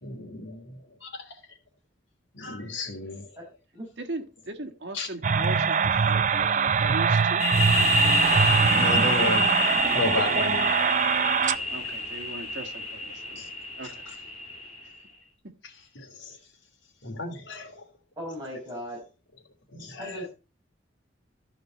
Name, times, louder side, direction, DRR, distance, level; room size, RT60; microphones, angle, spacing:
voice 1, 0.0-0.7 1.0-1.2 2.3-3.2 4.9-5.1 8.7-9.5 9.8-10.9 13.4-13.5 15.9-16.4 17.0-17.8 19.7-20.2, left 2 dB, 80° left, 2 dB, 3.0 m, -32 dB
voice 2, 4.0-7.5 11.7-13.4 13.8-14.1, right 2 dB, 65° right, 4 dB, 1.6 m, -38 dB
sound 1, 5.2-11.6, right 6 dB, 40° right, 0.5 m, -23 dB
sound 2, 7.4-14.9, left 1 dB, 35° left, 2.0 m, -27 dB
voice 3, 18.2-19.0 20.0-20.3, equal, 20° right, -6 dB, 5.9 m, -37 dB
14.0 x 5.4 x 4.4 m, 0.31 s
head